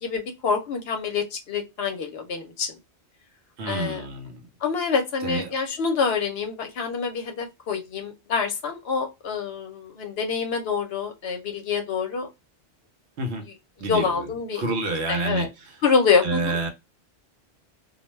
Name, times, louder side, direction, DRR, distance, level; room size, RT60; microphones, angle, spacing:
voice 1, 0.0-2.7 3.6-4.1 4.6-12.3 13.9-14.6 15.1-15.5 15.8-16.6, left 5 dB, 65° left, 0.8 m, -26 dB
voice 2, 3.6-4.4 5.2-5.5 13.2-13.4 13.8-15.5 16.2-16.7, right 2 dB, 70° right, 0.9 m, -28 dB
2.3 x 2.1 x 3.0 m
omnidirectional pair, 1.2 m